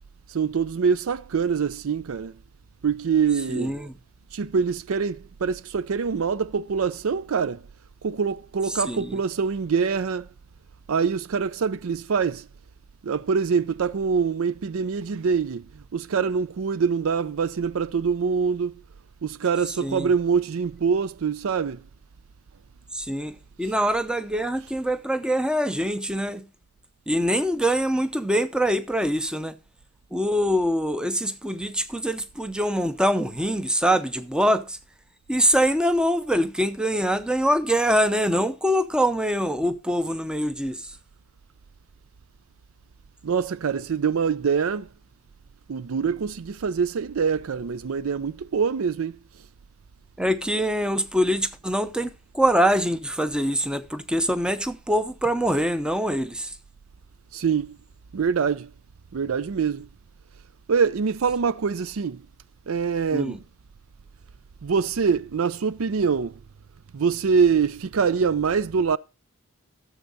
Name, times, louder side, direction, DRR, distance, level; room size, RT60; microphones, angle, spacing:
voice 1, 0.3-2.3 2.8-3.7 4.3-7.7 8.0-10.3 10.9-12.5 13.0-18.8 19.2-21.8 43.2-44.9 45.7-49.2 57.3-57.8 58.1-58.7 59.1-59.9 60.7-62.2 62.7-63.4 64.6-66.4 66.9-69.0, right 6 dB, 70° right, 0.5 m, -24 dB
voice 2, 3.5-3.9 8.7-9.2 19.8-20.1 22.9-26.5 27.1-29.6 30.1-34.8 35.3-41.0 50.2-56.6 63.1-63.4, equal, 5° right, 0.6 m, -24 dB
13.0 x 7.1 x 4.0 m
head